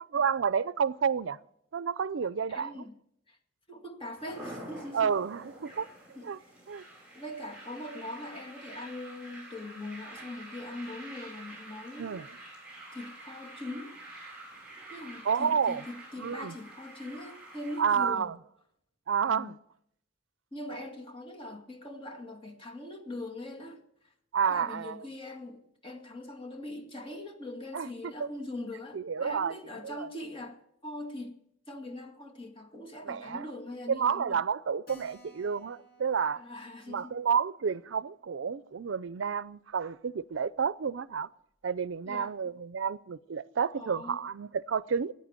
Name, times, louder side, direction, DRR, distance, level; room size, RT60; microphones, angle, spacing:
voice 1, 0.1-1.4 1.7-2.8 4.9-5.9 6.2-6.4 6.7-6.8 12.0-12.3 15.2-15.8 16.2-16.5 17.8-18.3 19.1-19.6 24.3-25.1 27.7-27.9 28.2-28.3 28.9-29.5 29.8-30.1 33.1-33.4 33.9-36.4 36.9-41.3 41.6-45.1, right 6 dB, 75° right, 0.5 m, -30 dB
voice 2, 2.5-2.9 3.3-3.4 3.7-5.1 6.2-6.5 7.1-12.2 12.9-14.0 14.4-14.5 14.9-18.3 19.2-19.5 20.5-23.8 24.5-31.4 31.7-34.4 36.4-37.2 42.1-42.5 43.8-44.3, left 1 dB, 25° left, 2.1 m, -42 dB
sound 1, 4.2-17.8, right 1 dB, 5° right, 7.1 m, -48 dB
Keyboard (musical), 34.9-39.9 40.2-40.3 40.6-40.7 40.9-41.0 41.6-41.9, equal, 50° left, 2.7 m, -60 dB
14.5 x 9.0 x 8.9 m
head